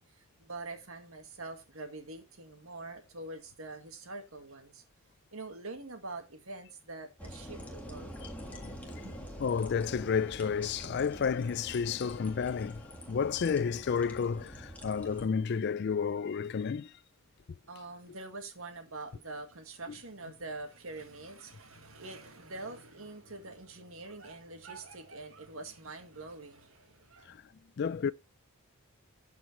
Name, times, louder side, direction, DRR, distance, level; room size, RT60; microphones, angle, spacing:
voice 1, 0.0-4.8 5.3-8.2 9.0-9.3 17.7-27.4, right 2 dB, 70° right, 1.9 m, -45 dB
sound 1, 7.2-15.3, equal, 5° left, 1.7 m, -46 dB
voice 2, 8.5-9.0 9.4-12.8 13.1-16.9 27.3-27.4 27.8-28.1, left 6 dB, 50° left, 0.3 m, -31 dB
12.0 x 4.9 x 4.4 m
head